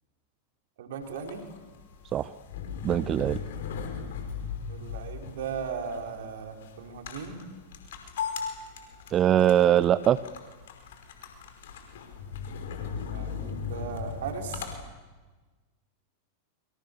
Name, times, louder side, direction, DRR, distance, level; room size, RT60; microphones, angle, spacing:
voice 1, 0.8-1.4 4.7-7.3 12.7-14.7, right 6 dB, 55° right, 3 dB, 4.7 m, -37 dB
sound 1, 1.0-14.8, left 6 dB, 60° left, 5.2 m, -38 dB
voice 2, 2.8-3.4 9.1-10.2, right 11 dB, 30° right, 17 dB, 0.8 m, -22 dB
28.0 x 25.5 x 7.0 m, 1.3 s
figure-of-eight pair, 90°, 0 cm